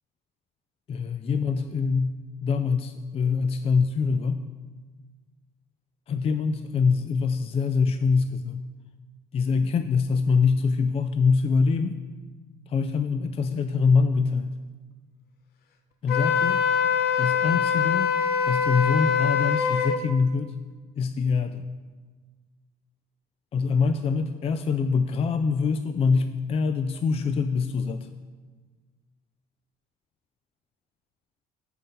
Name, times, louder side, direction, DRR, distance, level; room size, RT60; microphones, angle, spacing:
voice 1, 0.9-2.1 2.4-4.5 6.1-8.6 9.3-12.0 12.7-14.5 16.0-16.6 17.2-18.2 18.5-20.6 21.0-21.6 23.5-28.1, left 5 dB, 35° left, 10 dB, 0.4 m, -24 dB
Wind instrument woodwind instrument, 16.1-20.0, left 7 dB, 70° left, 0.8 m, -23 dB
7.6 x 5.8 x 5.4 m, 1.4 s
cardioid pair, 110°, 17 cm